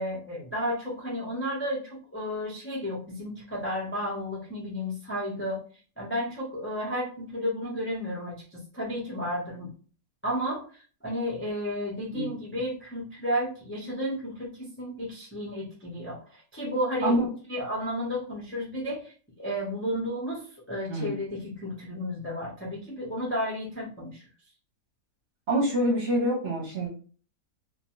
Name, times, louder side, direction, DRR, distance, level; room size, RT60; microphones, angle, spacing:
voice 1, 0.0-5.6 6.0-9.7 10.2-17.1 17.5-24.2, equal, 15° left, -5 dB, 0.4 m, -32 dB
voice 2, 25.5-26.9, right 1 dB, 45° right, -3 dB, 1.0 m, -26 dB
2.6 x 2.2 x 3.0 m, 0.41 s
omnidirectional pair, 1.7 m